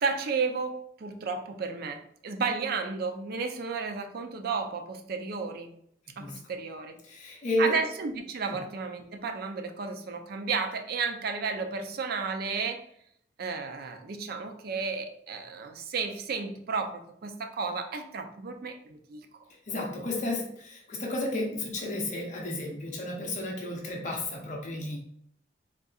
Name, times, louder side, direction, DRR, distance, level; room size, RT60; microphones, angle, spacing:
voice 1, 0.0-5.7 6.2-7.0 7.6-12.8 13.4-19.4, right 4 dB, 60° right, 5 dB, 0.4 m, -33 dB
voice 2, 7.0-7.7 19.7-25.0, left 1 dB, 45° left, 0 dB, 0.6 m, -32 dB
3.6 x 2.7 x 2.3 m, 0.68 s
head